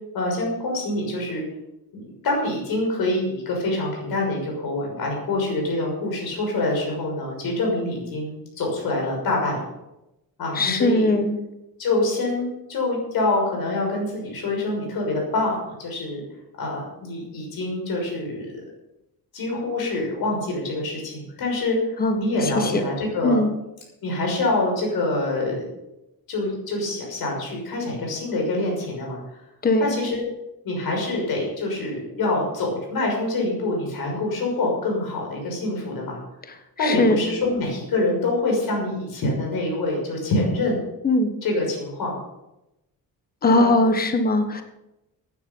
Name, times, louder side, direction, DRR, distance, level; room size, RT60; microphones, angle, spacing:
voice 1, 0.1-1.4 1.9-9.6 10.4-11.1 11.8-16.2 16.6-18.5 19.3-23.4 24.0-25.6 26.3-29.2 29.8-30.2 30.6-36.2 36.8-40.8 41.4-42.2 43.4-43.7, left 2 dB, 75° left, 0 dB, 6.2 m, -25 dB
voice 2, 10.5-11.3 22.0-22.2 22.6-22.7 23.2-23.5 29.6-29.8 36.8-37.2 41.0-41.3 43.4-44.6, left 2 dB, 25° left, 7 dB, 1.3 m, -20 dB
15.0 x 9.8 x 5.4 m, 0.91 s
wide cardioid pair, 175°, 36 cm